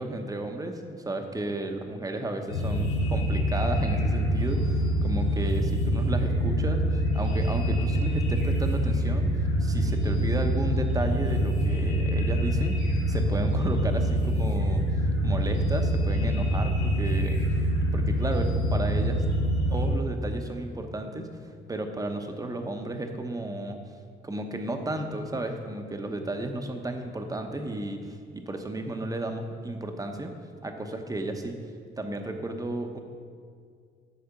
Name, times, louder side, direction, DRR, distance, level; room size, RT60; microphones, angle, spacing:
voice 1, 0.0-9.3 9.6-12.8 13.1-14.8 15.2-17.4 17.9-19.2 19.7-23.8 24.2-30.3 30.6-31.6 32.0-33.0, right 2 dB, 15° right, 5 dB, 1.0 m, -33 dB
sound 1, 2.5-19.9, equal, 90° left, 2.2 m, -25 dB
10.5 x 4.3 x 7.2 m, 2.2 s
cardioid pair, 90°, 20 cm